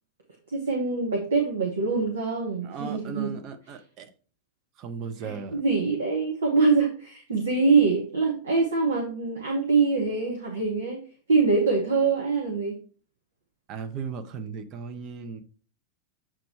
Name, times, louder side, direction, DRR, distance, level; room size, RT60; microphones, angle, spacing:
voice 1, 0.5-3.3 5.2-11.0 11.3-12.8, right 4 dB, 70° right, 1.1 m, -24 dB
voice 2, 2.6-4.1 4.8-5.6 13.7-15.4, right 5 dB, 35° right, 0.8 m, -36 dB
7.5 x 3.0 x 4.6 m
figure-of-eight pair, 90°, 0 cm